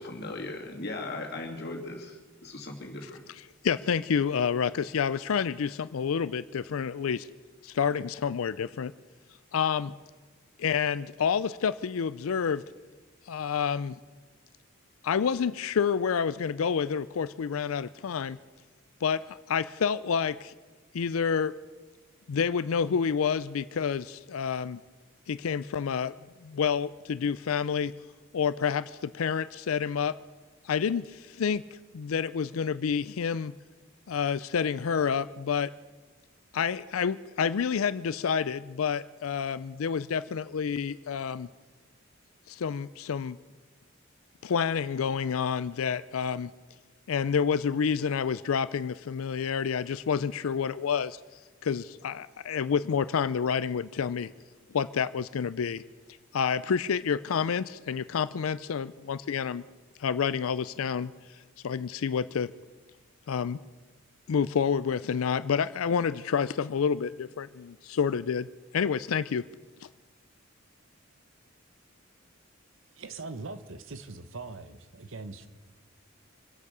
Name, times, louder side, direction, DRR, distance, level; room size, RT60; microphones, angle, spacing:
voice 1, 0.0-3.2, left 2 dB, 50° left, 1 dB, 2.7 m, -38 dB
voice 2, 3.6-7.3 7.6-8.9 9.5-9.9 10.6-12.6 13.3-14.0 15.0-18.4 19.0-20.5 20.9-21.5 22.3-24.8 25.3-26.1 26.4-27.9 28.3-30.1 30.6-31.6 31.9-33.5 34.1-35.7 36.5-41.5 42.5-43.4 44.4-46.5 47.1-51.2 51.6-54.3 54.7-55.8 56.3-59.6 60.0-61.1 61.6-62.5 63.3-63.6 64.3-68.5 68.7-69.4, left 6 dB, 80° left, 15 dB, 0.4 m, -28 dB
voice 3, 73.0-75.5, right 3 dB, 65° right, 12 dB, 1.0 m, -41 dB
25.5 x 8.4 x 6.7 m, 1.3 s
head